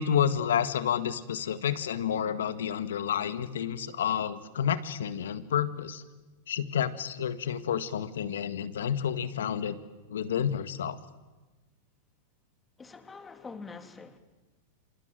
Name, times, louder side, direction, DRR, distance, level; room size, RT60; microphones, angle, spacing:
voice 1, 0.0-6.0 6.5-9.8 10.1-11.0, left 8 dB, 80° left, 1.8 m, -30 dB
voice 2, 12.8-14.2, left 4 dB, 15° left, 3.3 m, -45 dB
27.0 x 27.0 x 7.7 m
hypercardioid pair, 110°, 0 cm